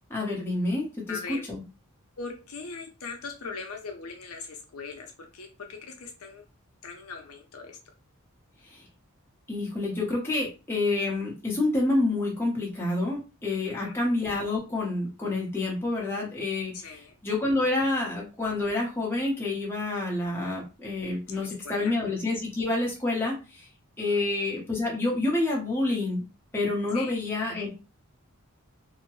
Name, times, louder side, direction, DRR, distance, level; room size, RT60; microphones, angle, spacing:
voice 1, 0.1-1.6 8.7-8.8 9.5-23.7 24.0-26.2 26.5-27.7, left 2 dB, 10° left, -3 dB, 0.9 m, -28 dB
voice 2, 1.1-1.4 2.2-6.4 6.8-7.8 13.7-13.9 16.7-17.1 21.3-21.9 24.1-24.2 26.9-27.2, left 4 dB, 75° left, 3 dB, 0.6 m, -40 dB
2.8 x 2.1 x 3.0 m, 0.30 s
head